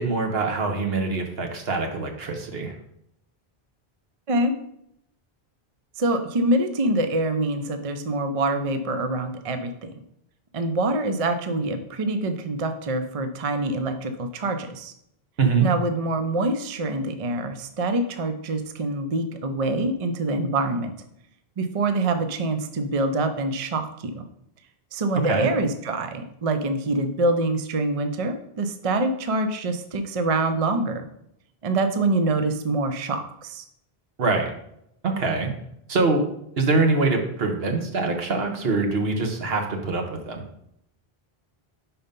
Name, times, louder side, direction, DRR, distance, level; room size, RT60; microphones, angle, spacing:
voice 1, 0.0-2.7 15.4-15.7 25.2-25.5 34.2-34.5 35.0-35.5 35.9-36.2 36.6-40.4, right 3 dB, 70° right, 4 dB, 1.2 m, -24 dB
voice 2, 6.0-9.7 10.5-14.9 15.6-20.9 21.6-23.9 24.1-24.3 24.9-31.0 31.6-33.6, right 2 dB, 40° right, 7 dB, 0.6 m, -25 dB
5.4 x 4.3 x 5.2 m, 0.75 s
omnidirectional pair, 1.1 m